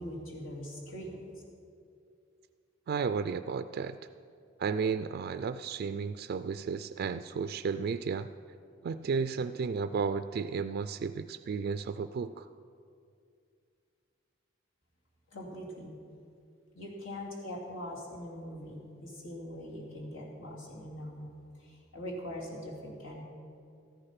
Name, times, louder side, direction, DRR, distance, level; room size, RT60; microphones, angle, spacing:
voice 1, 0.0-1.4 15.3-16.0 16.7-21.3 21.6-23.2, equal, 85° left, -3 dB, 2.6 m, -42 dB
voice 2, 2.9-4.0 4.6-8.3 8.8-12.5, right 5 dB, 55° right, 10 dB, 0.3 m, -33 dB
14.0 x 9.8 x 5.8 m, 2.4 s
head